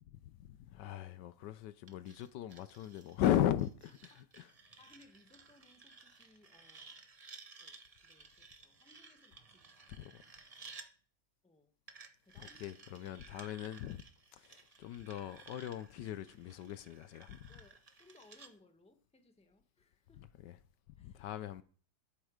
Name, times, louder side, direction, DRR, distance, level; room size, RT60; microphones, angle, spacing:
voice 1, 0.1-3.9 4.4-4.5 9.9-10.2 12.4-14.0 14.3-17.5 20.2-20.6 21.0-21.6, left 11 dB, 75° left, 1.2 m, -38 dB
sound 1, 1.9-10.9 11.9-18.5, right 4 dB, 35° right, 0.6 m, -56 dB
voice 2, 4.8-7.2 7.6-9.9 11.4-11.7 12.2-12.6 17.5-20.2 21.0-21.4, left 2 dB, 5° left, 0.9 m, -65 dB
12.5 x 8.0 x 5.0 m
omnidirectional pair, 2.0 m